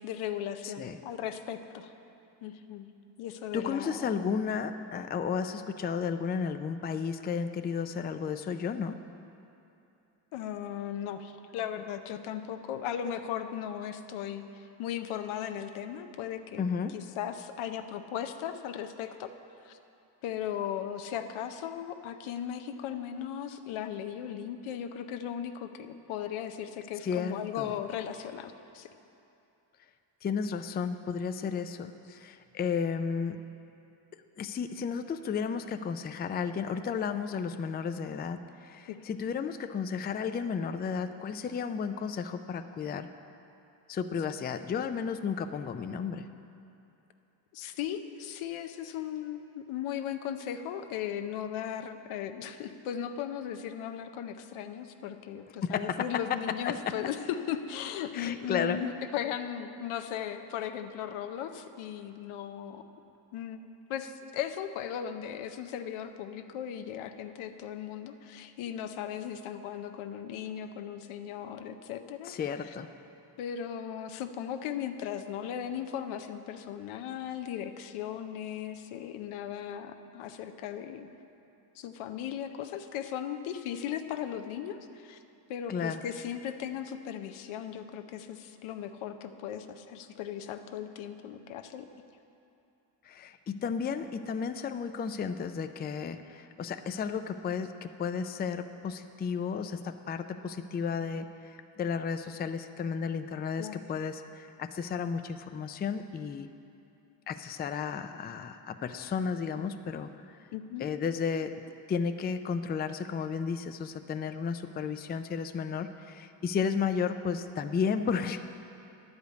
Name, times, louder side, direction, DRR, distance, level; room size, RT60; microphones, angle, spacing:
voice 1, 0.0-1.9 2.4-2.9 3.2-4.1 10.3-16.6 16.9-19.3 19.6-19.8 20.2-28.9 38.9-39.0 47.5-62.8 63.3-72.3 73.4-81.1 81.8-85.2 85.5-91.9 103.6-103.8 110.5-110.9, left 9 dB, 85° left, 8 dB, 0.7 m, -37 dB
voice 2, 0.6-1.0 3.5-9.0 16.6-17.0 27.0-27.7 30.2-33.4 34.4-43.1 43.9-46.3 55.6-56.1 56.7-56.9 58.1-58.8 72.2-72.9 85.7-86.0 93.0-106.5 107.3-110.4 110.8-111.6 111.9-118.4, left 6 dB, 25° left, 9 dB, 0.3 m, -33 dB
10.0 x 5.1 x 8.2 m, 2.8 s
cardioid pair, 85°, 47 cm